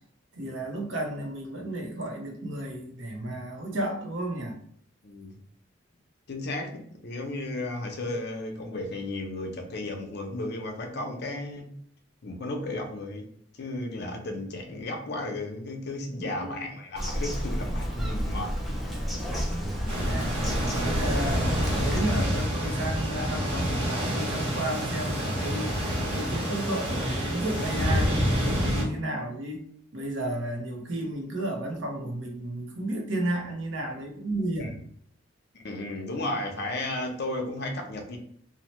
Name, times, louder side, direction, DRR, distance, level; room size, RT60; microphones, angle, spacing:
voice 1, 0.3-4.6 16.2-16.5 18.0-18.1 20.0-20.3 20.7-25.8 26.1-29.6 29.9-34.8, right 1 dB, 75° right, 3 dB, 0.7 m, -33 dB
voice 2, 5.0-5.4 6.3-11.7 12.2-13.2 13.5-19.7 34.6-34.7 35.6-38.2, left 2 dB, 60° left, 3 dB, 0.6 m, -34 dB
Bird vocalization bird call bird song, 17.0-22.0, equal, ahead, 0.5 m, -31 dB
sound 1, 19.9-28.8, equal, 30° right, 0.9 m, -28 dB
2.7 x 2.1 x 3.0 m, 0.66 s
head